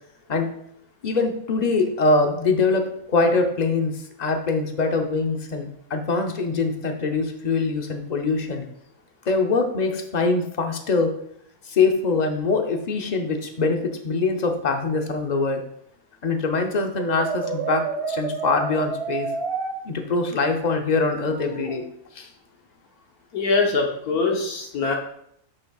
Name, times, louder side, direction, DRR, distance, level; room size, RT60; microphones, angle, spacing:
voice 1, 1.0-8.7 9.2-11.1 11.6-15.6 16.2-19.3 19.8-21.9 22.1-22.3, left 3 dB, 40° left, 4 dB, 0.6 m, -23 dB
Brass instrument, 17.0-19.7 21.3-21.8, right 5 dB, 50° right, 3.3 m, -29 dB
voice 2, 23.3-25.0, left 4 dB, 70° left, 1 dB, 1.6 m, -23 dB
8.1 x 7.1 x 2.4 m, 0.71 s
omnidirectional pair, 1.7 m